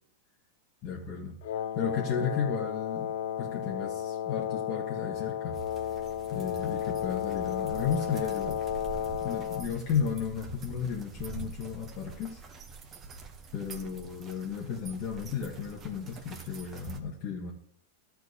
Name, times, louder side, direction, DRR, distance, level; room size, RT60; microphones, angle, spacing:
voice 1, 0.8-1.4 1.7-3.1 3.4-5.6 6.3-8.6 9.2-12.4 13.5-17.5, left 6 dB, 45° left, -2 dB, 1.8 m, -33 dB
Wind instrument woodwind instrument, 1.4-9.7, left 10 dB, 65° left, 0.6 m, -33 dB
sound 1, 5.5-17.0, right 4 dB, 25° right, 1.6 m, -45 dB
12.5 x 4.5 x 8.3 m, 0.65 s
supercardioid pair, 135°, 0 cm